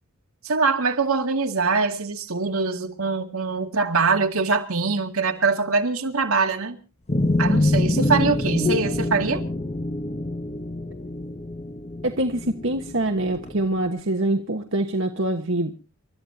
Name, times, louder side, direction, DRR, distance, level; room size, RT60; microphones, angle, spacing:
voice 1, 0.4-6.8 7.4-9.4, right 4 dB, 75° right, 2.1 m, -23 dB
sound 1, 7.1-13.7, left 2 dB, 30° left, 0.9 m, -25 dB
voice 2, 12.0-15.7, right 1 dB, 60° right, 1.3 m, -24 dB
29.0 x 13.5 x 2.8 m
head